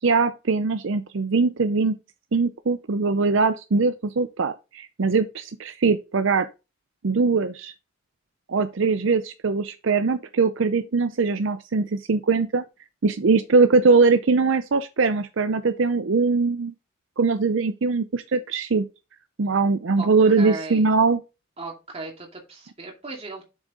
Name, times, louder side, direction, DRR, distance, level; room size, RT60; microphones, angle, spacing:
voice 1, 0.0-2.0 2.3-6.5 7.0-7.7 8.5-12.6 13.0-16.7 17.2-18.8 19.4-21.2, right 4 dB, 65° right, 0.6 m, -21 dB
voice 2, 20.0-20.8 21.6-23.4, right 3 dB, 30° right, 2.5 m, -37 dB
7.4 x 6.3 x 3.8 m
head